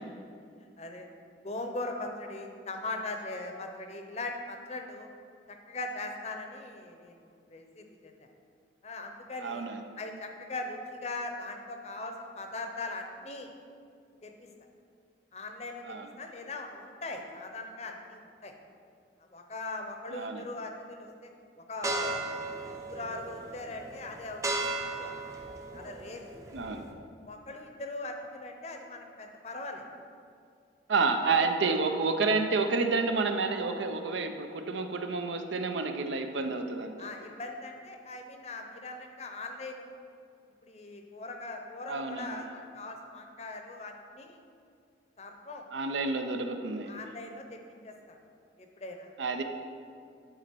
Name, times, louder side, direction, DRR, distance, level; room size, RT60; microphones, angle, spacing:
voice 1, 0.6-1.1 1.4-5.1 5.5-8.3 8.8-9.7 10.0-13.5 14.2-14.5 15.3-18.5 19.3-21.3 21.7-24.4 24.8-25.1 25.7-26.3 27.3-29.9 31.4-31.7 37.0-39.9 40.6-44.4 45.2-45.6 46.9-48.2 48.6-49.1, left 2 dB, 35° left, 4 dB, 0.7 m, -40 dB
voice 2, 9.4-9.8 15.9-16.1 20.1-20.4 26.5-26.8 30.9-37.1 41.9-42.4 45.7-46.9 49.2-49.4, right 4 dB, 85° right, 6 dB, 0.6 m, -29 dB
sound 1, 21.8-26.9, right 2 dB, 20° right, 0.5 m, -36 dB
10.5 x 4.1 x 4.5 m, 2.3 s
head